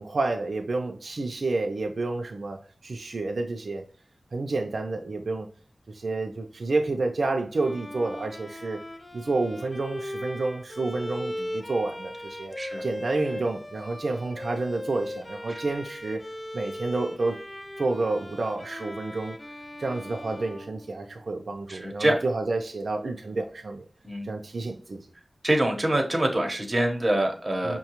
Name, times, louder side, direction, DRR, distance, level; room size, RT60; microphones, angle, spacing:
voice 1, 0.0-3.8 4.3-5.5 5.9-8.8 9.1-16.2 16.5-17.4 17.8-19.4 19.8-23.9 24.2-25.1 27.6-27.8, right 3 dB, 75° right, 0.4 m, -29 dB
Bowed string instrument, 7.5-21.4, left 1 dB, 25° left, 0.5 m, -38 dB
voice 2, 21.7-22.2 24.0-24.3 25.4-27.8, right 1 dB, 25° right, 0.9 m, -25 dB
5.6 x 2.2 x 2.9 m
wide cardioid pair, 90°, 0 cm